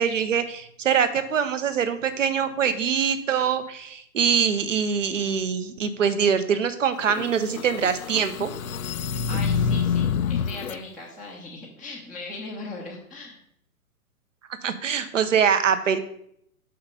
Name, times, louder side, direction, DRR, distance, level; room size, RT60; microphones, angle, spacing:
voice 1, 0.0-8.5 14.6-16.0, right 7 dB, 60° right, 10 dB, 0.9 m, -23 dB
sound 1, 7.0-10.8, left 6 dB, 70° left, 0.6 m, -27 dB
voice 2, 9.3-13.4, left 3 dB, ahead, -5 dB, 0.6 m, -38 dB
5.7 x 5.7 x 5.1 m, 0.72 s
figure-of-eight pair, 115°, 44 cm